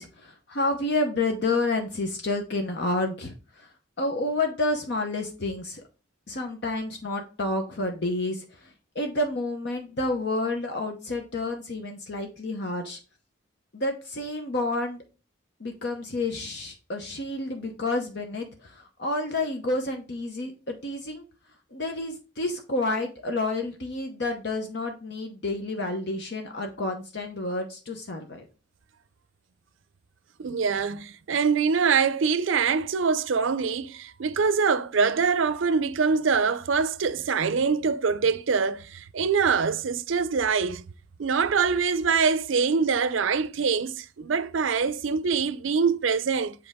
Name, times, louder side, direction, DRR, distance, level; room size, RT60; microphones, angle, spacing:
voice 1, 0.0-3.7 4.0-5.8 6.3-8.7 8.9-13.0 13.7-15.0 15.6-21.2 21.7-28.5, left 2 dB, 60° left, 0.9 m, -29 dB
voice 2, 30.4-38.8 39.1-40.8 41.2-46.5, right 5 dB, 80° right, 0.5 m, -24 dB
7.9 x 4.3 x 3.6 m
head